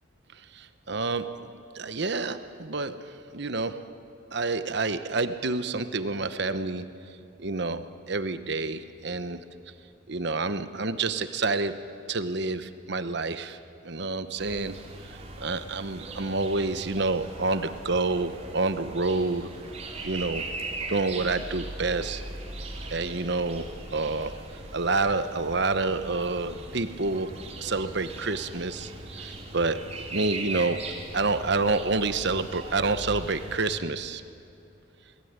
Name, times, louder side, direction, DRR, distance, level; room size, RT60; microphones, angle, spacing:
voice 1, 0.5-3.9 4.3-6.9 7.4-9.4 10.1-13.6 13.8-14.8 15.4-19.6 20.0-20.4 20.9-22.3 22.9-24.4 24.7-27.3 27.6-30.8 31.1-34.2, right 3 dB, 60° right, 11 dB, 1.1 m, -28 dB
sound 1, 14.4-33.6, right 2 dB, 35° right, 3.8 m, -39 dB
29.0 x 20.5 x 9.6 m, 2.6 s
head